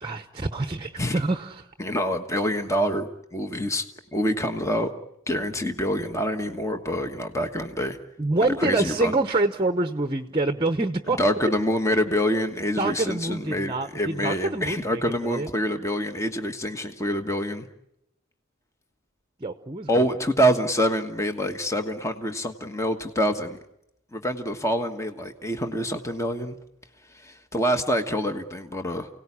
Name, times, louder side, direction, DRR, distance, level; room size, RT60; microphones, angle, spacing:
voice 1, 0.0-1.7 8.2-11.2 12.8-15.5 19.4-20.1, right 2 dB, 25° right, 9 dB, 1.0 m, -26 dB
voice 2, 1.8-3.8 4.1-4.9 5.3-8.0 8.6-9.1 11.1-17.6 19.9-23.6 24.1-26.5 27.1-29.1, equal, 15° left, 6 dB, 1.4 m, -26 dB
29.0 x 18.0 x 9.9 m, 0.82 s
head